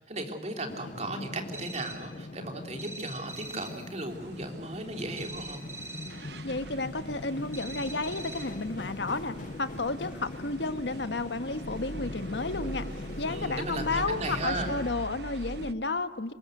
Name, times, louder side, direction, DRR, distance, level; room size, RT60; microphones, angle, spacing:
voice 1, 0.0-5.6 13.2-14.7, right 2 dB, 40° right, 4 dB, 3.5 m, -36 dB
sound 1, 0.7-14.9, left 2 dB, 45° left, 0.7 m, -41 dB
sound 2, 1.5-2.2 2.8-3.9 5.2-6.3 7.5-8.7, right 2 dB, 15° right, 3.1 m, -43 dB
sound 3, 4.1-15.7, right 2 dB, 65° right, 0.9 m, -44 dB
voice 2, 6.4-16.3, left 3 dB, 75° left, 11 dB, 1.4 m, -32 dB
26.5 x 21.0 x 7.9 m, 1.3 s
head